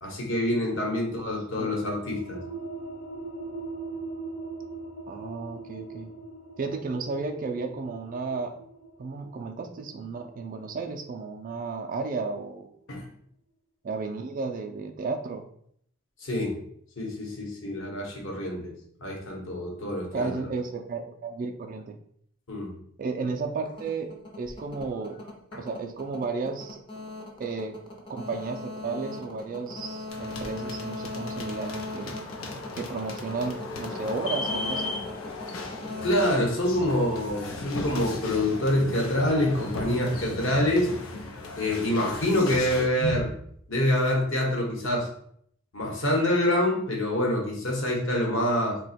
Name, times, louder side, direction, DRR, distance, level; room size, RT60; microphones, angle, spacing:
voice 1, 0.0-2.4 12.9-13.0 16.2-16.6 17.0-18.7 19.0-20.3 22.5-22.7 25.5-25.6 36.0-40.9 41.6-43.4 43.7-45.1 45.7-48.8, left 1 dB, 65° left, -1 dB, 1.0 m, -26 dB
sound 1, 1.2-12.4, right 3 dB, 45° left, 1.0 m, -41 dB
voice 2, 5.1-6.1 6.6-8.6 9.0-12.7 13.8-15.5 20.1-22.0 23.0-24.1 24.4-25.2 25.6-26.8 27.4-27.8 28.1-32.2 32.8-34.9, right 4 dB, 40° right, 4 dB, 0.3 m, -33 dB
sound 2, 23.6-37.5, left 2 dB, 25° left, 0.6 m, -39 dB
sound 3, 30.1-42.9, left 2 dB, 90° left, 0.6 m, -36 dB
2.8 x 2.2 x 4.1 m, 0.66 s
head